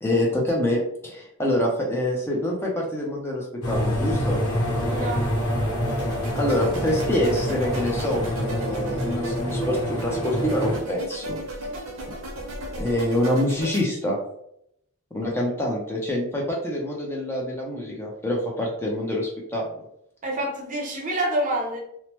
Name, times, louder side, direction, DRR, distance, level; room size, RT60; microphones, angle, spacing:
voice 1, 0.0-4.4 6.3-11.4 12.8-14.2 15.1-19.8, left 1 dB, 10° left, -2 dB, 0.4 m, -26 dB
sound 1, 3.6-10.8, equal, 85° left, 0.9 m, -26 dB
voice 2, 4.9-5.2 20.2-21.8, right 1 dB, 35° right, 1 dB, 0.6 m, -27 dB
sound 2, 5.8-13.8, right 1 dB, 70° right, 0.7 m, -36 dB
3.0 x 2.0 x 2.9 m, 0.74 s
head